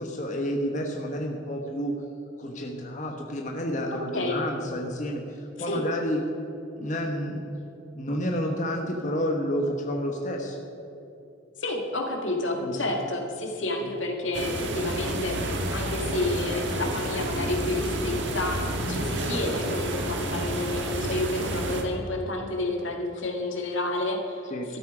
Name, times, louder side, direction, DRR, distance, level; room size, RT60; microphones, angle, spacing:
voice 1, 0.0-1.9 2.4-6.2 6.8-7.5 7.9-10.6 12.5-13.0 13.8-13.9 24.5-24.7, equal, 40° left, 1 dB, 1.2 m, -30 dB
voice 2, 3.9-4.4 5.7-5.8 11.6-24.8, left 2 dB, 85° left, 1 dB, 2.2 m, -30 dB
sound 1, 14.3-21.8, right 1 dB, 70° right, 1.6 m, -30 dB
13.5 x 12.5 x 5.0 m, 2.9 s
head